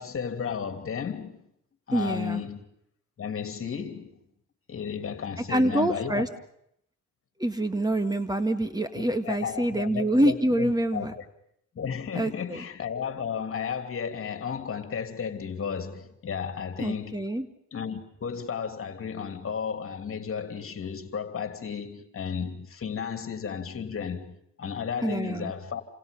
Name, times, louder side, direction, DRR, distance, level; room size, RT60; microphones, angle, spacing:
voice 1, 0.0-1.4 1.9-2.6 3.2-4.2 4.7-6.2 8.9-11.2 11.7-17.2 17.7-25.8, left 7 dB, 45° left, 3.1 m, -33 dB
voice 2, 1.9-2.4 5.5-6.3 7.4-11.1 12.1-12.6 16.8-17.5 25.0-25.5, right 1 dB, 15° right, 1.9 m, -26 dB
29.0 x 27.5 x 5.4 m
cardioid pair, 90°, 30 cm